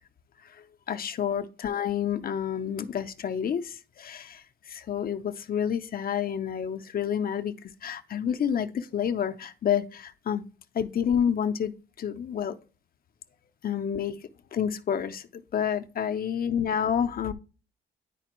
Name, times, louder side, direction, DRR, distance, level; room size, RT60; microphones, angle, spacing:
voice 1, 0.9-10.4 10.7-12.6 13.6-14.2 14.5-17.3, left 8 dB, 50° left, 0.6 m, -29 dB
9.9 x 4.1 x 3.0 m
cardioid pair, 90°, 20 cm